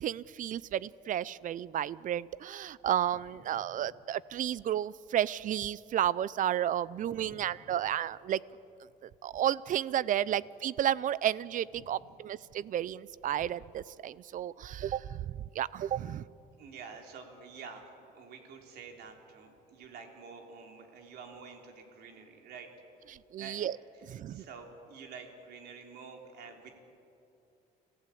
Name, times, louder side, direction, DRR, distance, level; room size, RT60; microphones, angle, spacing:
voice 1, 0.0-8.4 9.0-16.2 23.3-23.8 24.0-24.4, right 11 dB, 50° right, 21 dB, 0.5 m, -32 dB
voice 2, 7.1-7.7 16.6-22.7 23.4-23.6 24.2-26.8, right 5 dB, 70° right, 3 dB, 3.4 m, -48 dB
27.5 x 15.0 x 8.4 m, 2.7 s
cardioid pair, 110°, 17 cm